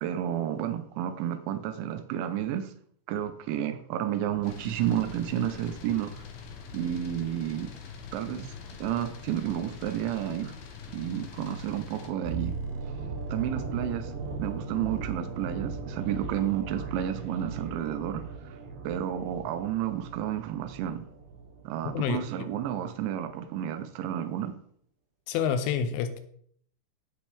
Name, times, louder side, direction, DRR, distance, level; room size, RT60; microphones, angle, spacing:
voice 1, 0.0-2.7 3.1-6.1 6.7-7.7 8.1-8.5 8.8-10.6 10.9-12.5 13.3-14.1 14.4-18.2 18.8-21.0 21.6-24.5, right 11 dB, 80° right, 3.1 m, -31 dB
sound 1, 4.4-12.1, left 5 dB, 65° left, 2.7 m, -44 dB
sound 2, 12.2-22.2 22.5-22.7, right 4 dB, 60° right, 2.5 m, -38 dB
voice 2, 21.9-22.3 25.3-26.2, left 7 dB, 85° left, 3.3 m, -28 dB
15.5 x 6.0 x 3.4 m
omnidirectional pair, 5.5 m